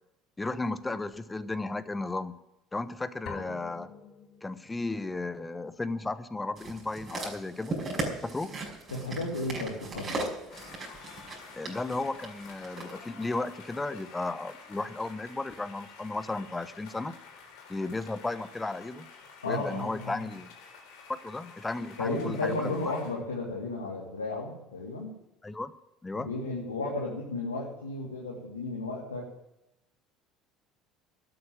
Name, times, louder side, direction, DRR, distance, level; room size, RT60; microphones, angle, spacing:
voice 1, 0.4-2.4 2.7-3.9 4.4-7.7 8.2-8.5 11.5-17.1 17.7-19.1 19.4-20.5 21.1-22.9 25.4-25.7 26.0-26.3, left 2 dB, 15° left, 14 dB, 1.1 m, -34 dB
sound 1, 3.3-5.1, left 6 dB, 45° left, 2.4 m, -45 dB
sound 2, 6.6-12.9 13.7-13.8, right 2 dB, 35° right, 5.4 m, -37 dB
voice 2, 8.9-10.3 19.4-20.2 22.0-25.1 26.1-29.3, left 2 dB, 85° left, -3 dB, 2.1 m, -34 dB
sound 3, 10.5-23.1, left 5 dB, 65° left, 3.8 m, -50 dB
12.5 x 9.0 x 8.9 m, 0.88 s
hypercardioid pair, 65°, 0 cm